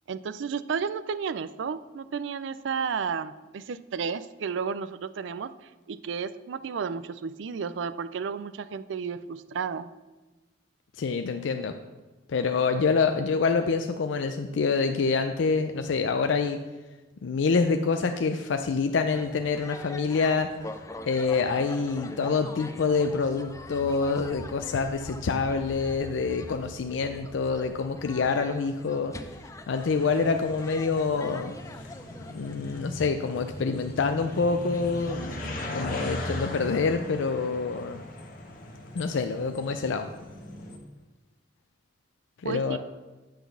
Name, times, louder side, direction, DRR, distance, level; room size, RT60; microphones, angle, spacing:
voice 1, 0.1-5.5 5.9-9.9 42.4-42.8, right 6 dB, 85° right, 14 dB, 0.4 m, -32 dB
voice 2, 11.0-11.8 12.3-16.6 17.2-20.5 21.1-29.1 29.7-31.5 32.3-35.4 35.7-38.0 39.0-40.1 42.4-42.8, left 4 dB, 90° left, 7 dB, 0.4 m, -26 dB
sound 1, 19.1-36.8, left 2 dB, 15° left, 0.5 m, -45 dB
sound 2, 23.2-29.1, equal, ahead, 1.2 m, -47 dB
sound 3, 29.8-40.8, left 1 dB, 50° left, 1.2 m, -38 dB
8.6 x 3.9 x 6.8 m, 1.2 s
head